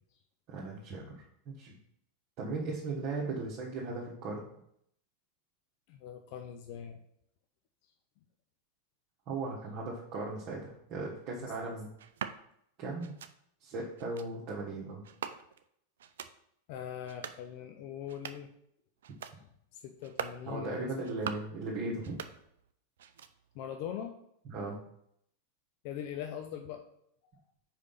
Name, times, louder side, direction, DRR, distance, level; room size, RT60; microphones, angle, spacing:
voice 1, 0.5-1.7 2.4-4.4 9.3-11.9 12.8-13.1 13.6-15.0 20.5-22.2 24.4-24.8, right 3 dB, 40° right, -4 dB, 1.3 m, -37 dB
voice 2, 5.9-7.0 11.4-11.5 16.7-18.5 19.4-21.3 23.5-24.1 25.8-26.8, left 9 dB, 45° left, 5 dB, 0.6 m, -42 dB
sound 1, 12.0-12.4 13.0-13.3 14.0-14.3 15.0-15.7 16.0-16.3 17.0-17.4 18.0-18.5 19.0-19.4 20.0-20.4 21.0-21.5 22.0-22.7 23.0-23.6, right 8 dB, 60° right, 0.4 m, -43 dB
5.0 x 5.0 x 5.7 m, 0.72 s
figure-of-eight pair, 90°, 0 cm